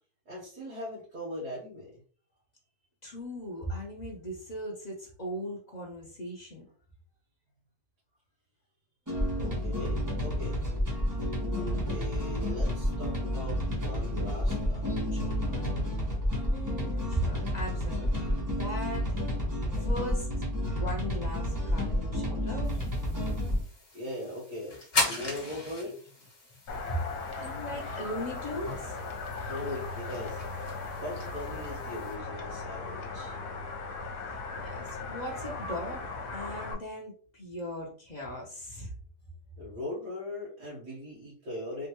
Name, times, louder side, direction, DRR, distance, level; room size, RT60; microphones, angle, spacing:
voice 1, 0.3-2.0 9.4-10.6 11.4-15.6 23.9-26.0 29.5-33.4 39.6-41.9, left 1 dB, 75° right, -6 dB, 1.7 m, -40 dB
voice 2, 3.0-6.7 16.5-19.2 19.8-20.3 20.6-22.7 26.8-29.0 34.6-38.9, equal, 55° left, -2 dB, 0.4 m, -38 dB
sound 1, 9.1-23.6, equal, 15° right, 0.8 m, -30 dB
sound 2, 22.6-32.2, left 2 dB, 40° left, 1.3 m, -38 dB
sound 3, 26.7-36.7, left 3 dB, 75° left, 1.2 m, -38 dB
3.6 x 2.3 x 2.9 m, 0.43 s
omnidirectional pair, 1.7 m